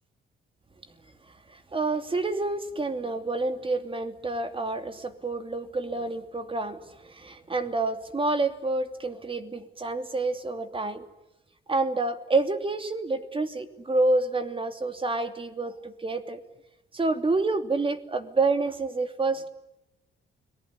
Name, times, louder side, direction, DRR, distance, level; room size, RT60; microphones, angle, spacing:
voice 1, 1.5-11.0 11.7-16.4 16.9-19.5, right 3 dB, 25° right, 8 dB, 2.8 m, -28 dB
30.0 x 20.0 x 9.8 m, 0.94 s
cardioid pair, 90°, 20 cm